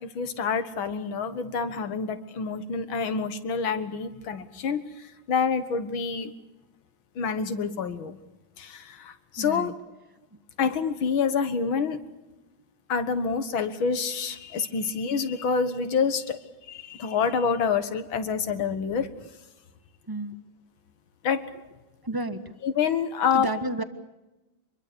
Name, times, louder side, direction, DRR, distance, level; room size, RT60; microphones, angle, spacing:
voice 1, 0.0-4.8 5.3-6.3 7.2-8.2 8.6-9.7 10.6-12.0 12.9-16.4 16.7-19.1 21.2-21.4 22.6-23.5, left 5 dB, 85° left, 10 dB, 2.3 m, -27 dB
voice 2, 9.4-9.7 20.1-20.4 22.0-22.5 23.3-23.8, right 2 dB, 15° right, 10 dB, 1.1 m, -31 dB
25.5 x 22.0 x 6.9 m, 1.0 s
omnidirectional pair, 2.1 m